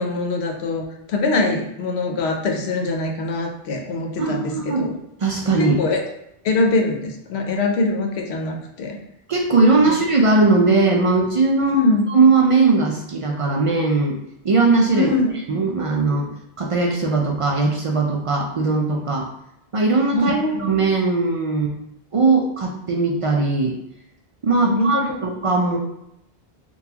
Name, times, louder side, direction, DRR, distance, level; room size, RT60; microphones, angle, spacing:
voice 1, 0.0-5.0 5.6-6.0 6.4-9.0 9.9-10.0 11.6-12.0 14.9-15.4 20.1-20.7 24.6-25.2, left 2 dB, 85° left, 2 dB, 0.9 m, -23 dB
voice 2, 4.2-4.9 5.2-5.8 9.3-11.8 12.1-14.2 14.4-15.1 15.5-16.3 16.6-19.3 19.7-21.7 22.1-23.8 24.4-25.8, right 3 dB, 60° right, 0 dB, 0.3 m, -19 dB
3.8 x 2.3 x 2.8 m, 0.80 s
omnidirectional pair, 1.1 m